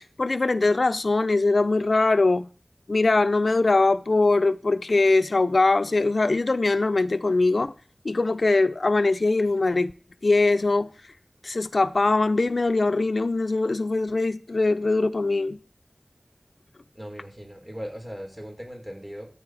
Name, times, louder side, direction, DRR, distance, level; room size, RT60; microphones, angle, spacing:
voice 1, 0.0-2.5 2.9-7.7 8.0-9.9 10.2-10.9 11.4-15.6, left 3 dB, 85° left, 0.6 m, -22 dB
voice 2, 16.9-19.3, equal, 25° right, 5.4 m, -38 dB
14.5 x 8.6 x 4.9 m
wide cardioid pair, 50°, 0 cm